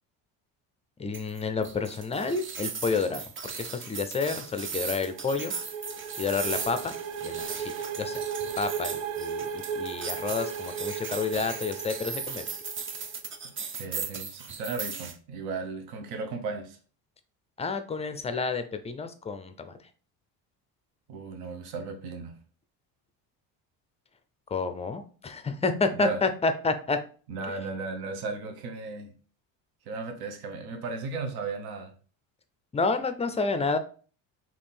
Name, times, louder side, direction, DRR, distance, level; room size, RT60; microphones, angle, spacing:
voice 1, 1.0-3.2 3.6-5.5 6.2-6.9 7.2-8.2 8.6-12.5 17.6-19.8 24.5-27.0 32.7-33.8, left 4 dB, 15° left, 9 dB, 0.4 m, -29 dB
sound 1, 1.1-15.1, right 6 dB, 30° right, 0.5 m, -37 dB
sound 2, 4.5-13.1, right 6 dB, 85° right, 0.6 m, -36 dB
voice 2, 13.8-16.8 21.1-22.4 26.0-26.2 27.3-29.1 29.9-31.9, right 4 dB, 65° right, 5 dB, 1.0 m, -35 dB
3.5 x 2.9 x 4.2 m, 0.39 s
supercardioid pair, 105°, 40 cm